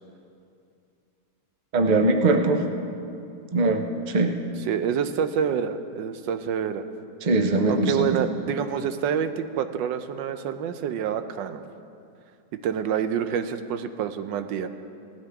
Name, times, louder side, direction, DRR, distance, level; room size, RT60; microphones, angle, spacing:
voice 1, 1.7-2.6 3.5-4.4 7.2-8.1, right 2 dB, 40° right, 5 dB, 0.6 m, -21 dB
voice 2, 4.7-6.9 7.7-11.6 12.6-14.7, right 8 dB, 85° right, 10 dB, 1.3 m, -27 dB
18.5 x 13.0 x 3.5 m, 2.5 s
omnidirectional pair, 2.0 m